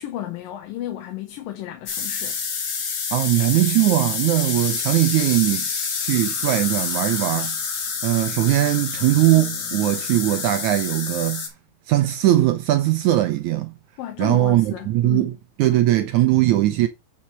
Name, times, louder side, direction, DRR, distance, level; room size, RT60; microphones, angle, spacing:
voice 1, 0.0-2.4 14.0-15.3, left 13 dB, 75° left, 2.9 m, -33 dB
sound 1, 1.9-11.5, left 5 dB, 50° left, 3.0 m, -28 dB
voice 2, 3.1-5.7 6.0-7.6 8.0-11.5 11.9-13.7 14.2-15.3 15.6-16.9, right 15 dB, 75° right, 1.8 m, -20 dB
9.9 x 5.9 x 3.2 m
omnidirectional pair, 4.1 m